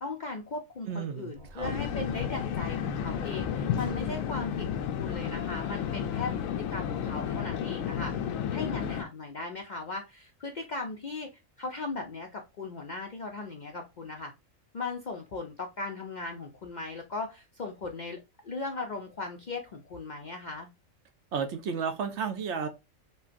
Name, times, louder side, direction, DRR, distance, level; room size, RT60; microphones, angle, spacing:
voice 1, 0.0-6.3 6.6-8.1 8.5-11.3 11.6-14.3 14.7-20.7, left 3 dB, 55° left, 0.5 m, -38 dB
voice 2, 0.9-1.7 21.3-22.7, right 6 dB, 65° right, 0.9 m, -33 dB
sound 1, 1.3-4.7, equal, 35° right, 1.3 m, -48 dB
sound 2, 1.6-9.0, left 8 dB, 85° left, 1.0 m, -32 dB
5.4 x 2.2 x 2.5 m
omnidirectional pair, 1.4 m